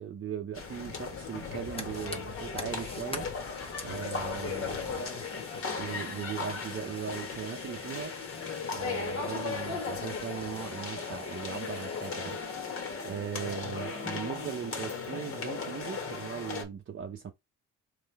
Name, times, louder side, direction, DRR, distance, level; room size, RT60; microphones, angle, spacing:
voice 1, 0.0-3.3 3.8-5.2 5.8-8.2 8.7-17.3, right 8 dB, 45° right, 0.8 m, -39 dB
sound 1, 0.5-16.6, left 5 dB, 45° left, 1.6 m, -37 dB
Fire, 1.4-12.9, left 2 dB, 20° left, 0.8 m, -48 dB
3.8 x 3.3 x 3.5 m
cardioid pair, 90°, 30 cm